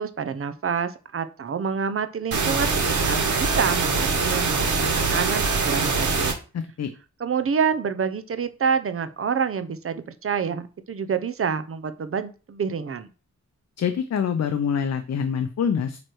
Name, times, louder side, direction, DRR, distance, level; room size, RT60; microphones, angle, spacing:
voice 1, 0.0-6.4 7.2-13.1, right 6 dB, 45° right, 11 dB, 0.7 m, -27 dB
sound 1, 2.3-6.3, right 4 dB, 75° right, 1.8 m, -23 dB
voice 2, 6.5-6.9 13.8-16.0, left 7 dB, 60° left, 8 dB, 0.7 m, -25 dB
9.0 x 3.2 x 4.5 m, 0.34 s
wide cardioid pair, 165°, 30 cm